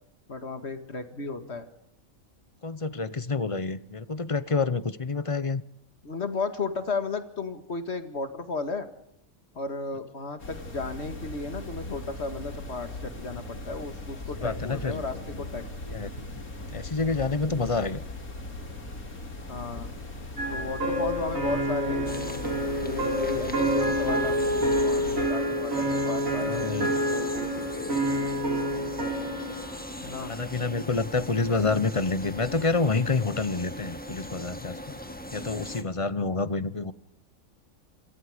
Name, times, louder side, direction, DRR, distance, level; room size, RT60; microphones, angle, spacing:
voice 1, 0.3-1.7 6.0-8.9 9.5-15.6 17.5-17.8 19.5-19.9 20.5-22.2 22.8-28.0 30.0-30.3, left 3 dB, 50° left, 8 dB, 2.2 m, -34 dB
voice 2, 2.6-5.6 14.4-15.2 15.9-16.1 16.7-18.0 26.3-26.9 30.3-35.0 35.3-36.9, left 4 dB, 30° left, 15 dB, 0.8 m, -28 dB
sound 1, 10.4-25.3, left 2 dB, 90° left, 3.5 m, -39 dB
sound 2, 20.4-29.8, equal, 70° right, 4.9 m, -28 dB
sound 3, 22.1-35.8, left 1 dB, 5° left, 1.7 m, -40 dB
27.0 x 23.5 x 5.1 m, 0.75 s
omnidirectional pair, 1.5 m